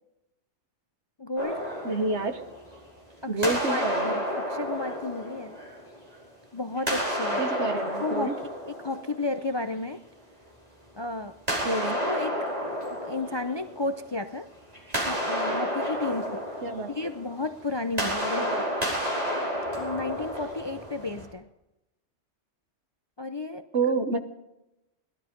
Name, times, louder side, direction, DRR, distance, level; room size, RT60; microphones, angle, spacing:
voice 1, 1.2-1.7 3.2-5.6 6.5-7.4 8.0-10.0 11.0-11.4 11.6-11.7 12.0-12.4 12.9-14.5 15.1-16.6 16.9-18.5 19.8-21.5 23.2-23.7, left 3 dB, 30° left, 10 dB, 0.5 m, -33 dB
sound 1, 1.4-3.0 3.4-6.2 6.8-9.6 11.5-14.2 14.6-21.2, equal, 30° right, 5.0 m, -31 dB
voice 2, 1.8-2.4 3.3-4.2 7.4-8.3 11.6-12.0 16.6-16.9 18.4-18.6 23.7-24.2, right 3 dB, 65° right, 8 dB, 1.5 m, -28 dB
19.0 x 12.5 x 5.2 m, 0.94 s
omnidirectional pair, 1.2 m